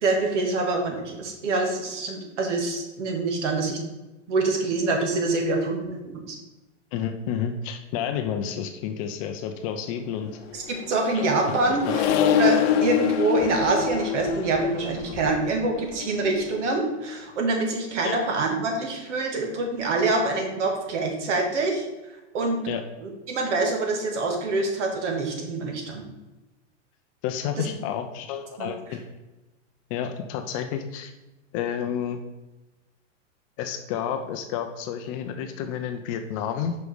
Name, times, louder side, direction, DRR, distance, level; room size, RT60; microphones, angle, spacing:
voice 1, 0.0-3.8 4.3-6.4 10.5-12.0 12.4-22.7 23.0-26.0 27.6-27.7 28.6-28.7, right 3 dB, 75° right, 2 dB, 1.8 m, -26 dB
voice 2, 6.9-10.3 11.1-11.6 11.9-12.0 18.0-18.2 22.7-22.8 27.2-29.0 29.9-31.1 31.5-32.2 33.6-36.8, left 8 dB, 30° left, 7 dB, 0.4 m, -30 dB
Accelerating revving vroom, 10.4-17.1, left 8 dB, 60° left, 0.7 m, -26 dB
5.2 x 4.9 x 4.8 m, 1.1 s
supercardioid pair, 150°, 36 cm